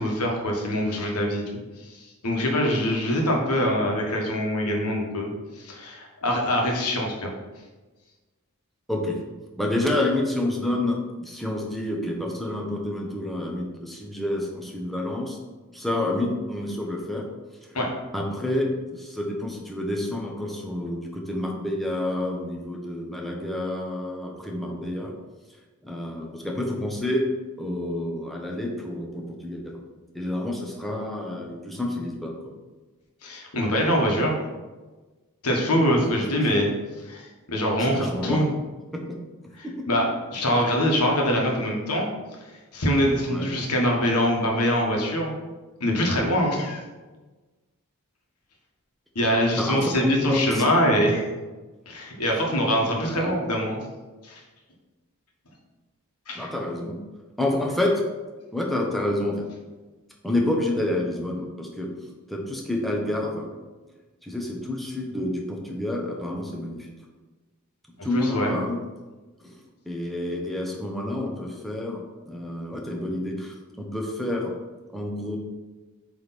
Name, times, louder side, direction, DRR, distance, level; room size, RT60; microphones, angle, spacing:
voice 1, 0.0-1.4 1.8-7.3 17.7-17.9 33.2-34.3 35.4-36.7 37.0-38.5 39.6-40.0 40.3-42.1 42.7-45.3 45.8-46.8 49.1-51.2 51.9-53.8 54.2-54.4 56.3-56.4 68.1-68.5, equal, 90° left, 0 dB, 1.4 m, -24 dB
voice 2, 8.9-9.2 9.6-15.4 15.7-17.3 17.6-17.8 18.1-25.1 25.8-27.2 27.6-29.7 30.1-32.4 36.0-36.2 37.8-38.5 38.9-39.2 39.6-39.8 43.3-43.6 49.6-50.7 53.0-53.4 56.3-57.0 57.4-57.9 58.5-59.5 60.2-61.9 62.3-63.5 64.2-66.9 68.0-68.8 69.4-69.5 69.9-74.5 74.9-75.4, left 1 dB, ahead, -1 dB, 0.9 m, -28 dB
7.8 x 3.5 x 4.1 m, 1.2 s
head